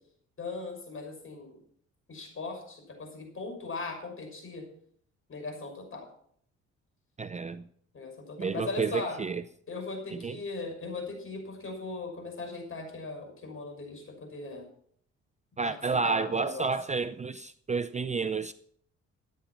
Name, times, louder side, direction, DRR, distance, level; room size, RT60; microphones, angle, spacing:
voice 1, 0.4-1.6 2.1-4.6 5.3-6.1 7.9-9.2 9.7-14.7 15.6-15.8 16.0-16.7, left 3 dB, 45° left, 6.1 m, -38 dB
voice 2, 7.2-7.6 8.4-9.4 10.1-10.4 15.6-18.5, right 4 dB, 25° right, 0.5 m, -30 dB
14.5 x 9.4 x 6.0 m
cardioid pair, 90°, 30 cm